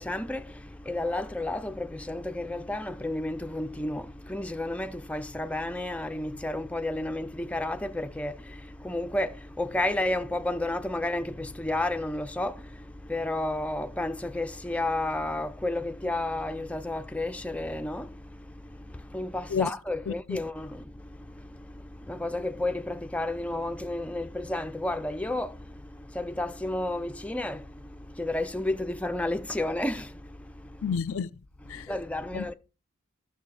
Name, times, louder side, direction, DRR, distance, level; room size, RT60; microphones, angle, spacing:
voice 1, 0.0-30.9 31.7-32.5, left 1 dB, 5° left, 0.5 m, -32 dB
voice 2, 20.1-20.4 30.8-31.3 31.7-31.9 32.3-32.5, left 6 dB, 65° left, 0.4 m, -30 dB
12.5 x 6.7 x 4.8 m
head